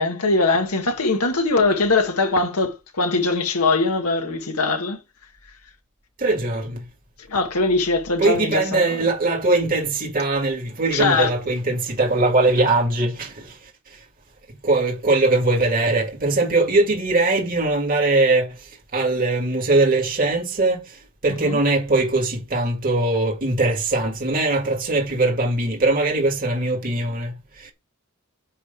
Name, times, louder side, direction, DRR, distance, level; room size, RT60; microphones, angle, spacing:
voice 1, 0.0-5.0 7.3-9.0 10.9-11.3 21.4-21.6, left 3 dB, 85° left, 1.8 m, -21 dB
voice 2, 6.2-6.8 8.2-13.3 14.6-18.5 18.9-20.8 21.2-27.3, right 2 dB, 40° right, 2.3 m, -21 dB
9.9 x 3.3 x 6.9 m
head